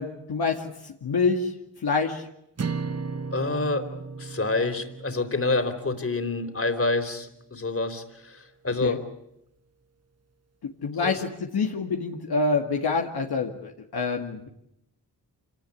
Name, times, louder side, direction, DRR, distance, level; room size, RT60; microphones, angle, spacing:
voice 1, 0.0-1.5 1.8-2.3 8.8-9.0 10.8-14.5, left 4 dB, 70° left, 2 dB, 2.3 m, -27 dB
sound 1, 2.6-6.9, right 5 dB, 40° right, 1.3 m, -36 dB
voice 2, 3.3-3.9 4.2-9.0 10.9-11.2, left 3 dB, 35° left, 7 dB, 3.9 m, -27 dB
26.5 x 18.0 x 9.8 m, 0.79 s
cardioid pair, 65°, 40 cm